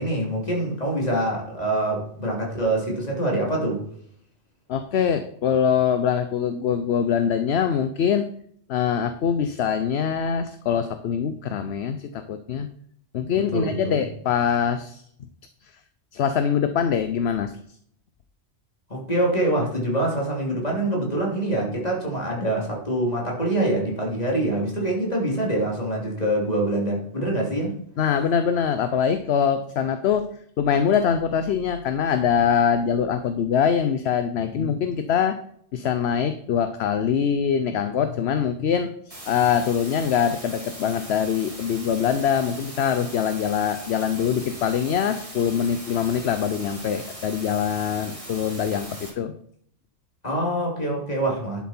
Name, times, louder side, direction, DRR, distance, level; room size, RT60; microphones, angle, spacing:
voice 1, 0.0-3.8 13.5-14.0 18.9-27.7 34.5-34.8 50.2-51.6, right 1 dB, 35° left, -2 dB, 3.3 m, -25 dB
voice 2, 4.7-8.3 8.7-12.7 13.1-15.0 16.1-17.5 28.0-30.3 30.6-35.4 35.7-38.9 39.3-49.3, left 7 dB, 65° left, 10 dB, 0.9 m, -23 dB
sound 1, 39.1-49.1, right 1 dB, 30° right, 3.2 m, -40 dB
11.0 x 7.2 x 4.4 m, 0.66 s
omnidirectional pair, 1.2 m